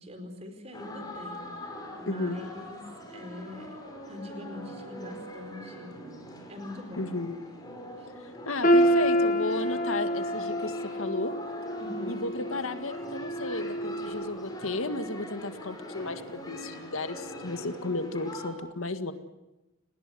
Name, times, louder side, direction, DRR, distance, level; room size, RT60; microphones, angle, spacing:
voice 1, 0.0-1.4 2.0-2.8 3.1-3.8 4.1-5.9 6.5-7.1 8.0-8.1 11.8-12.2, left 2 dB, 30° right, 7 dB, 4.4 m, -42 dB
sound 1, 0.7-18.5, equal, 20° left, 4.8 m, -43 dB
voice 2, 2.1-2.4 7.0-7.4 8.2-11.4 12.1-19.1, left 2 dB, 75° left, 9 dB, 1.9 m, -34 dB
sound 2, 8.6-14.6 15.0-15.2 16.0-16.1, equal, 40° left, 1.6 m, -28 dB
30.0 x 19.5 x 7.9 m, 0.98 s
head